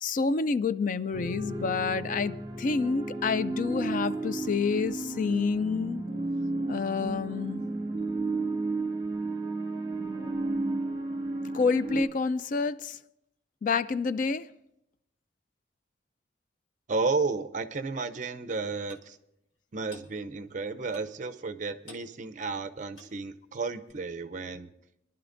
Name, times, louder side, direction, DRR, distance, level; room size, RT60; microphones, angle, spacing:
voice 1, 0.0-6.0 6.7-7.6 11.5-13.0 13.6-14.5, left 4 dB, 50° left, 0.4 m, -28 dB
sound 1, 1.1-12.0, right 2 dB, 30° right, 1.5 m, -33 dB
voice 2, 16.9-19.2 19.7-24.7, right 4 dB, 45° right, 0.6 m, -32 dB
Clock, 18.9-19.1 19.9-20.1 20.9-21.2 21.9-22.1 22.9-23.2 23.9-24.0, left 1 dB, 85° left, 1.8 m, -50 dB
23.5 x 11.0 x 2.6 m
head